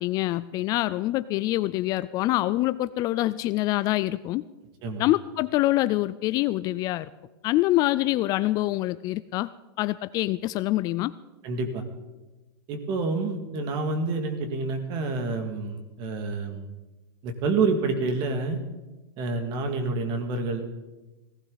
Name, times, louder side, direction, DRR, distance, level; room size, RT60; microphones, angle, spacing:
voice 1, 0.0-4.4 5.0-7.1 7.4-9.5 9.8-11.1, left 16 dB, 30° left, 15 dB, 0.4 m, -25 dB
voice 2, 11.4-11.8 12.7-16.7 17.2-18.6 19.2-20.7, right 3 dB, 40° right, 6 dB, 2.3 m, -28 dB
18.0 x 16.0 x 4.0 m, 1.1 s
hypercardioid pair, 135°, 12 cm